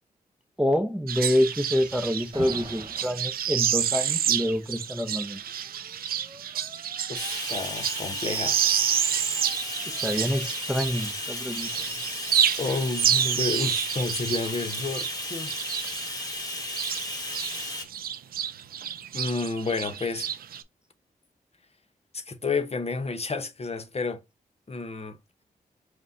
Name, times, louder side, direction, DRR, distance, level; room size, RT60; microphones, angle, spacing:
voice 1, 0.6-5.4 9.9-11.9, equal, 5° right, 0.7 m, -27 dB
sound 1, 1.1-11.2 11.5-17.6 17.9-20.6, right 9 dB, 85° right, 0.4 m, -29 dB
Alarm, 2.3-3.3 4.5-12.2, right 2 dB, 35° right, 1.2 m, -47 dB
voice 2, 7.1-8.8 12.6-15.5 19.1-20.3 22.1-24.2 24.7-25.2, left 3 dB, 45° left, 0.8 m, -30 dB
Bathtub (filling or washing), 7.1-17.8, left 1 dB, 25° left, 1.7 m, -34 dB
5.1 x 2.2 x 3.8 m
cardioid pair, 50°, 15 cm